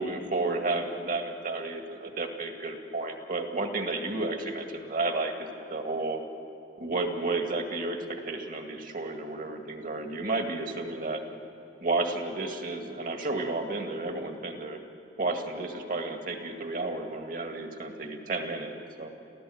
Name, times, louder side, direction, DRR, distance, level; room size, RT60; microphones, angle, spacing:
voice 1, 0.0-6.2 6.8-11.2 11.8-14.8 15.2-18.7 19.0-19.1, right 2 dB, 50° right, 5 dB, 1.9 m, -32 dB
30.0 x 14.5 x 7.8 m, 2.7 s
head